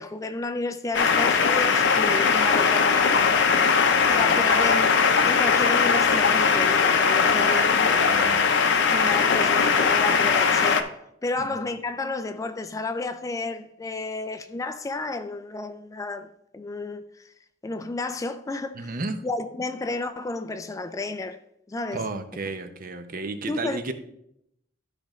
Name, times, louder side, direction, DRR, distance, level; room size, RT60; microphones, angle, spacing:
voice 1, 0.0-3.4 4.1-8.0 8.6-10.8 11.2-17.3 17.6-19.0 19.2-21.4 21.7-22.1 23.5-23.8, left 3 dB, 15° left, 0.3 m, -32 dB
sound 1, 0.9-10.8, left 5 dB, 65° left, 0.6 m, -20 dB
voice 2, 7.2-8.5 11.5-11.6 18.8-19.2 21.9-23.9, right 3 dB, 45° right, 0.7 m, -33 dB
12.5 x 5.1 x 3.1 m
head